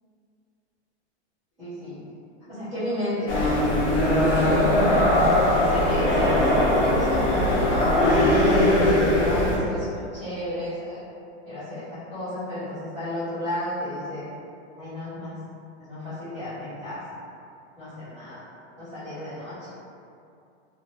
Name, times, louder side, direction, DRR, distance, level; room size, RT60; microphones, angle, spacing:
voice 1, 1.6-2.0 2.5-3.8 4.2-5.0 5.7-11.0 11.4-14.2 14.7-15.4 15.8-17.0 17.8-18.4 18.8-19.8, left 1 dB, ahead, -23 dB, 0.4 m, -33 dB
sound 1, 3.3-9.6, left 1 dB, 50° left, 0.8 m, -20 dB
2.9 x 2.5 x 3.0 m, 2.5 s
supercardioid pair, 175°, 35 cm